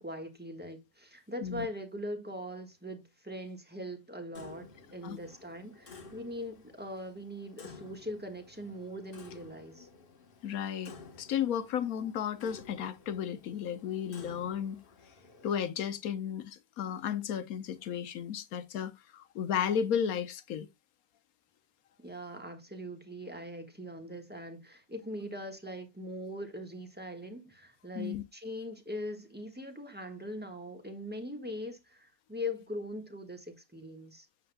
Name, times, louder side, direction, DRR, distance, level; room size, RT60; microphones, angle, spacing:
voice 1, 0.0-9.9 22.0-34.3, left 1 dB, 5° right, 1.4 m, -41 dB
Clock, 4.3-15.7, left 4 dB, 40° left, 1.2 m, -53 dB
voice 2, 10.4-10.9 11.2-14.8 15.4-20.7 28.0-28.2, left 8 dB, 75° left, 1.2 m, -33 dB
7.8 x 7.6 x 2.2 m
omnidirectional pair, 1.6 m